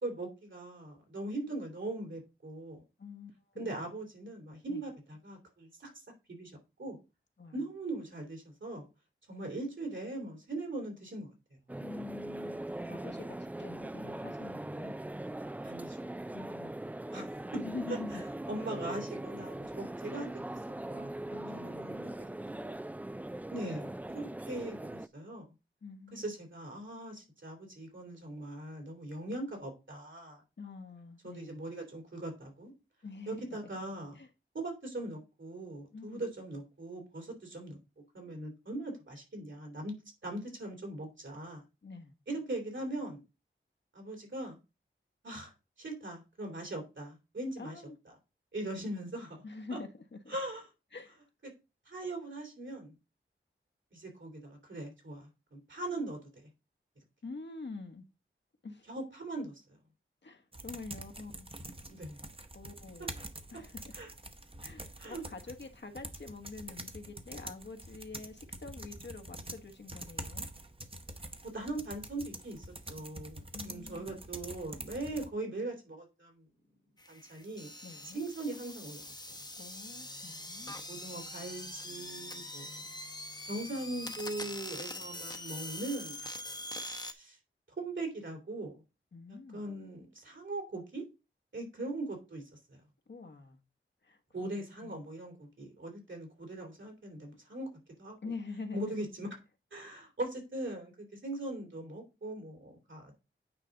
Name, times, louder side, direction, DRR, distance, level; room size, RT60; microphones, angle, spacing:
voice 1, 0.0-2.8 3.6-5.9 6.3-6.5 6.8-7.0 7.5-8.8 9.3-11.3 15.6-16.1 17.1-17.3 18.1-18.2 18.5-20.6 20.9-21.9 22.2-22.7 23.5-25.4 26.1-30.4 31.2-32.7 33.3-34.2 34.5-37.8 38.1-40.0 40.2-41.6 42.3-43.2 43.9-44.6 45.2-45.5 45.8-47.8 48.5-49.4 49.7-49.8 50.3-50.6 51.9-52.9 53.9-56.5 58.9-59.6 61.9-62.2 63.9-64.1 65.0-65.2 71.5-76.4 77.1-77.7 78.1-79.4 80.9-83.0 83.5-86.2 87.1-87.4 87.8-88.7 89.3-91.0 91.5-92.4 94.3-97.7 98.0-98.2 98.7-99.3 99.7-103.2, right 2 dB, 65° right, 3.1 m, -40 dB
voice 2, 3.0-3.7 4.7-4.8 7.4-7.5 11.8-12.6 12.9-14.9 16.3-16.8 17.5-18.2 21.3-22.2 25.8-26.4 30.6-31.6 33.0-33.4 34.1-34.3 35.9-36.2 41.8-42.1 47.6-48.0 49.4-50.4 50.9-51.2 57.2-58.0 58.6-58.9 60.2-61.5 62.5-63.2 63.5-63.8 64.6-70.5 73.5-74.1 77.8-78.2 79.6-80.8 89.1-89.6 93.1-93.6 94.0-95.0 98.2-99.1, left 4 dB, 60° left, 1.2 m, -46 dB
sound 1, 11.7-25.1, right 1 dB, 5° right, 0.3 m, -41 dB
sound 2, 60.5-75.3, right 1 dB, 25° right, 1.0 m, -46 dB
sound 3, 77.0-87.1, left 1 dB, 20° left, 0.9 m, -43 dB
9.1 x 4.9 x 3.9 m
wide cardioid pair, 60°, 21 cm